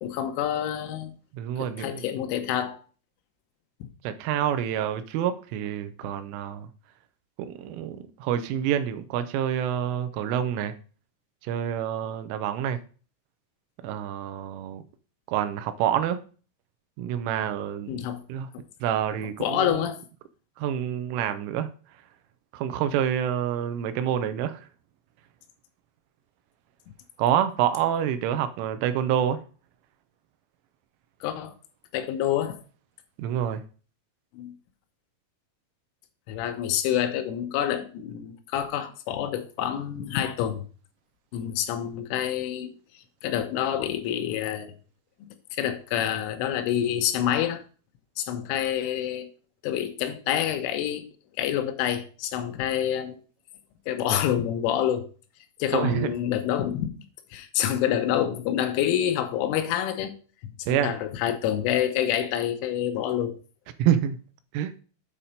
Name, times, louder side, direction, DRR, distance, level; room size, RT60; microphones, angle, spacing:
voice 1, 0.0-1.1 1.6-2.8 17.9-18.2 18.5-18.6 19.4-20.0 31.2-31.5 31.9-32.6 34.3-34.5 36.3-40.6 41.3-42.7 43.2-44.7 45.5-47.6 48.2-49.3 49.6-51.1 51.4-53.2 53.9-55.1 55.6-57.0 57.3-60.1 60.4-63.4, left 10 dB, 90° left, 3.3 m, -27 dB
voice 2, 1.3-2.1 4.0-6.7 7.4-10.7 11.5-12.8 13.8-14.8 15.3-16.2 17.0-18.0 18.3-18.5 18.8-19.8 20.6-21.7 22.5-24.7 27.2-29.4 33.2-33.6 55.7-56.1 60.7-60.9 63.8-64.2 64.5-64.7, right 10 dB, 90° right, 3.2 m, -27 dB
8.8 x 4.3 x 5.2 m
omnidirectional pair, 5.8 m